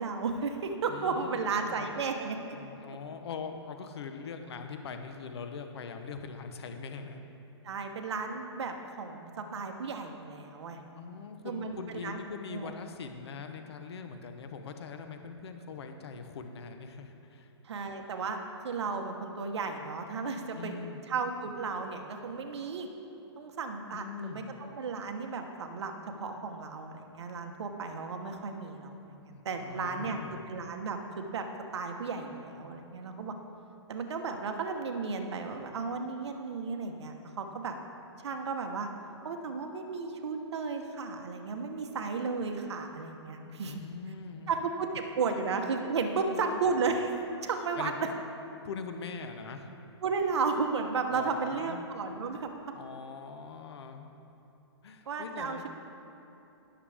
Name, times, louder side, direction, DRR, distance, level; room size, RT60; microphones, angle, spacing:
voice 1, 0.0-2.4 7.6-10.8 11.4-12.2 12.5-12.7 17.6-18.4 18.6-20.7 21.1-22.9 23.4-25.9 26.2-31.5 31.7-33.3 33.9-37.7 38.2-38.9 39.2-43.8 44.5-48.1 50.0-52.5 55.1-55.6, right 4 dB, 70° right, 4 dB, 1.2 m, -34 dB
voice 2, 0.9-1.9 2.5-7.2 10.9-17.5 20.5-21.0 23.9-24.4 29.3-30.4 43.4-44.5 46.1-46.6 47.8-48.2 48.6-49.7 51.1-51.8 52.7-54.1 54.8-55.7, left 5 dB, 65° left, 6 dB, 0.9 m, -42 dB
17.5 x 6.9 x 3.5 m, 2.9 s
hypercardioid pair, 160°, 15 cm